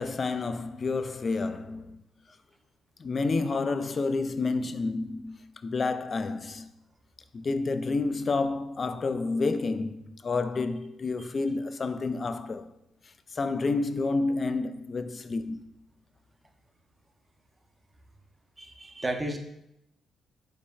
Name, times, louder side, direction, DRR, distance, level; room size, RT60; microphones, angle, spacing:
voice 1, 0.0-2.0 3.0-6.7 7.3-12.7 13.3-15.6, left 3 dB, 40° left, 0.3 m, -29 dB
voice 2, 18.6-19.4, right 1 dB, 20° right, 0.7 m, -32 dB
5.1 x 4.2 x 2.3 m
cardioid pair, 90°, 0 cm